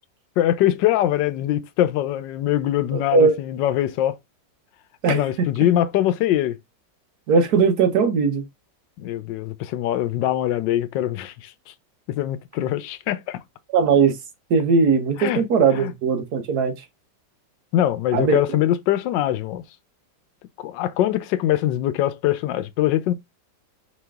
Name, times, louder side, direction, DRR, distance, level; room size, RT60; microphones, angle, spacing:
voice 1, 0.4-4.2 5.1-6.6 9.0-11.7 12.1-13.4 15.2-15.4 15.7-15.9 17.7-19.6 20.6-23.1, left 12 dB, 90° left, 1.3 m, -23 dB
voice 2, 2.9-3.3 5.0-5.5 7.3-8.5 13.7-14.1 14.5-16.7 18.1-18.4, right 5 dB, 65° right, 1.4 m, -19 dB
5.1 x 3.1 x 3.4 m
omnidirectional pair, 1.9 m